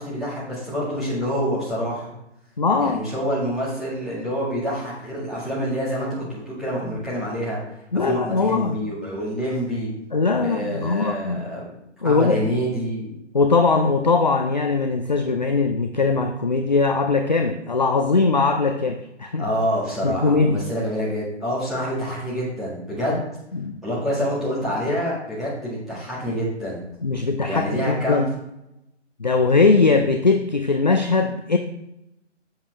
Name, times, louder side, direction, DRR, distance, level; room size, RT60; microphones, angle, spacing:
voice 1, 0.0-2.1 2.8-7.6 8.0-9.9 10.4-11.6 12.0-13.1 19.4-23.2 23.8-26.8 27.5-28.2, equal, ahead, -11 dB, 1.7 m, -27 dB
voice 2, 2.6-3.0 7.9-8.8 10.1-11.5 12.0-12.4 13.3-19.5 20.0-20.6 23.1-23.2 23.5-23.8 27.0-28.3 29.2-31.6, left 4 dB, 40° left, 5 dB, 0.4 m, -20 dB
7.2 x 7.1 x 3.3 m, 0.85 s
figure-of-eight pair, 155°, 37 cm